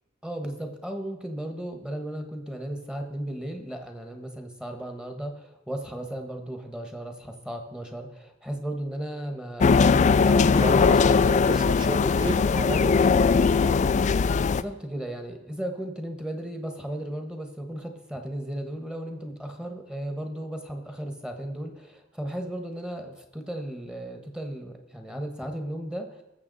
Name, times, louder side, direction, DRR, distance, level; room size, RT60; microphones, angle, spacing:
voice 1, 0.2-10.9 14.6-26.2, right 1 dB, 5° right, 5 dB, 1.3 m, -35 dB
sound 1, 9.6-14.6, left 5 dB, 40° left, 0.4 m, -20 dB
voice 2, 10.6-13.8, right 2 dB, 25° right, 14 dB, 0.5 m, -35 dB
20.0 x 7.2 x 4.0 m, 0.92 s
head